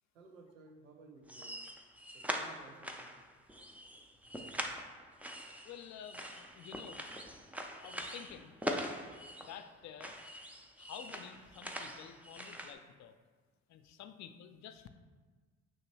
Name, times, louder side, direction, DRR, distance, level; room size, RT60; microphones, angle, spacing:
voice 1, 0.1-1.6 2.1-3.1, right 3 dB, 90° right, 3 dB, 0.6 m, -57 dB
sound 1, 1.3-9.7 10.0-12.7, equal, 5° right, 0.4 m, -43 dB
voice 2, 5.6-7.1 7.8-8.6 9.4-10.3 10.8-13.2 13.7-14.9, left 9 dB, 50° left, 9 dB, 0.5 m, -51 dB
5.6 x 2.9 x 3.0 m, 1.4 s
hypercardioid pair, 50°, 38 cm